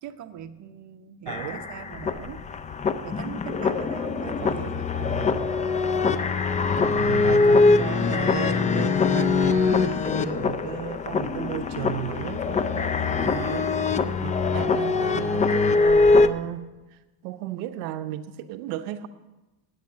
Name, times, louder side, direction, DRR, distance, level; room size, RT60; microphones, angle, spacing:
voice 1, 0.0-2.4 3.0-4.8 14.0-14.4, right 9 dB, 35° right, 0.9 m, -41 dB
sound 1, 1.3-16.3, left 4 dB, 15° left, 0.4 m, -23 dB
voice 2, 1.3-1.6 4.2-5.5 6.8-14.0 14.2-19.1, right 13 dB, 75° right, 0.7 m, -35 dB
10.5 x 8.1 x 8.5 m
supercardioid pair, 95°, 49 cm